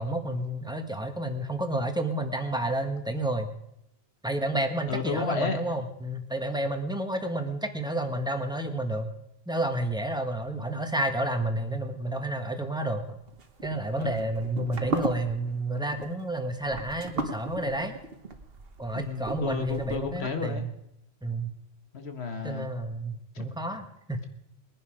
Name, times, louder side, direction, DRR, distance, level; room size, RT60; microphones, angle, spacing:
voice 1, 0.0-3.5 4.2-9.1 9.5-13.2 13.6-17.9 18.8-20.7 21.2-21.5 22.4-24.2, right 1 dB, 5° right, 6 dB, 1.3 m, -30 dB
voice 2, 4.9-5.8 14.0-14.3 18.9-20.7 21.9-22.7 23.3-23.4, left 5 dB, 75° left, 6 dB, 1.8 m, -32 dB
sound 1, 13.3-20.3, right 2 dB, 60° right, 1.4 m, -36 dB
21.0 x 10.0 x 5.0 m, 0.80 s
omnidirectional pair, 1.1 m